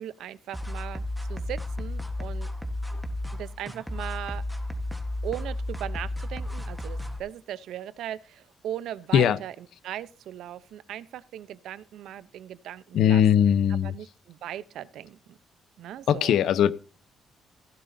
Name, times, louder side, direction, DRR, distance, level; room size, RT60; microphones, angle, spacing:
voice 1, 0.0-2.5 3.3-4.4 5.2-9.5 9.8-13.2 13.8-15.4 15.8-16.4, right 11 dB, 85° right, 16 dB, 0.7 m, -38 dB
sound 1, 0.5-7.2, left 1 dB, ahead, 1.3 m, -33 dB
voice 2, 12.9-13.9 16.1-16.7, left 9 dB, 80° left, 15 dB, 0.8 m, -20 dB
16.0 x 11.0 x 2.7 m, 0.35 s
cardioid pair, 135°, 0 cm